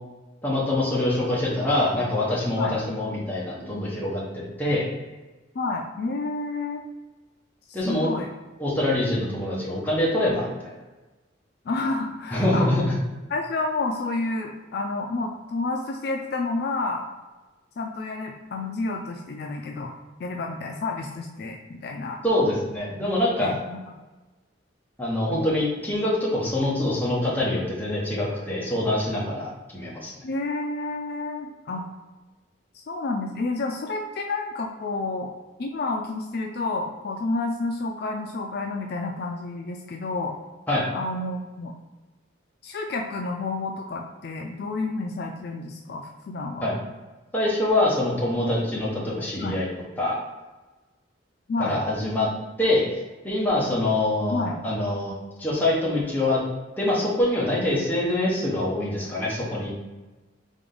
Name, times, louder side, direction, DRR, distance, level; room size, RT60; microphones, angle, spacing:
voice 1, 0.4-4.9 7.7-8.1 8.6-10.7 12.3-12.8 22.2-23.6 25.0-30.1 40.7-40.8 46.6-46.7 47.3-49.7 50.0-50.1 51.6-52.3 52.6-56.4 56.8-59.7, left 1 dB, 10° left, -5 dB, 1.0 m, -25 dB
voice 2, 5.5-6.8 7.8-8.3 11.7-12.7 13.3-17.0 17.8-19.9 20.2-22.2 23.4-23.8 30.2-31.8 32.9-35.3 35.6-40.4 40.9-41.7 42.6-46.6 49.4-49.6 51.5-51.8 54.3-54.6, left 3 dB, 55° left, 2 dB, 0.4 m, -30 dB
3.6 x 3.4 x 3.7 m, 1.2 s
head